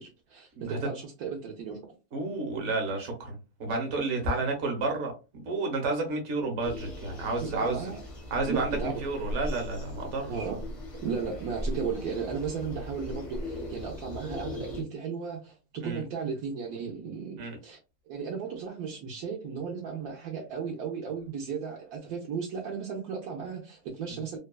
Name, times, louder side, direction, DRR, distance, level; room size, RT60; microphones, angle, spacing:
voice 1, 0.0-1.9 7.4-8.0 8.4-9.0 10.3-10.7 11.0-17.8 18.1-24.4, right 6 dB, 75° right, 1.1 m, -35 dB
voice 2, 2.1-7.9 8.3-10.4 15.8-16.0 17.4-17.6, right 3 dB, 50° right, 1.1 m, -31 dB
sound 1, 6.6-14.8, left 1 dB, 45° left, 0.4 m, -38 dB
3.0 x 2.3 x 2.2 m
omnidirectional pair, 1.7 m